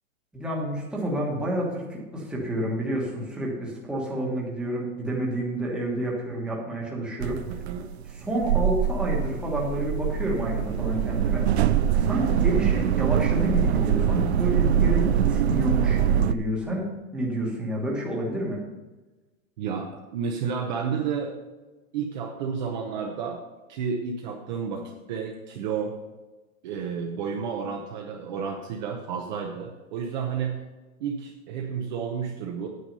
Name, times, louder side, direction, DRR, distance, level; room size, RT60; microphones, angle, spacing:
voice 1, 0.3-7.4 8.1-11.4 11.9-18.6, right 1 dB, ahead, -4 dB, 1.3 m, -29 dB
sound 1, 7.2-16.3, right 9 dB, 50° right, 0.5 m, -23 dB
voice 2, 19.6-21.3 21.9-23.4 23.7-25.9 26.6-30.6 31.0-32.7, right 6 dB, 35° right, 1 dB, 0.8 m, -31 dB
9.3 x 8.2 x 5.4 m, 1.2 s
supercardioid pair, 170°, 42 cm